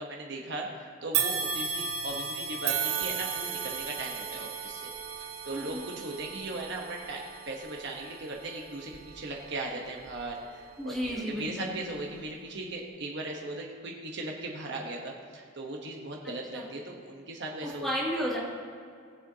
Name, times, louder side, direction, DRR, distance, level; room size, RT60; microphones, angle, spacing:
voice 1, 0.0-4.9 5.2-17.9, right 2 dB, 55° right, -1 dB, 1.0 m, -38 dB
sound 1, 1.1-10.5 11.0-11.1 12.1-12.2, right 6 dB, 85° right, 1.0 m, -35 dB
voice 2, 5.5-5.9 10.8-11.8 16.5-16.6 17.6-18.4, equal, ahead, -7 dB, 2.4 m, -33 dB
20.0 x 7.7 x 2.8 m, 2.2 s
head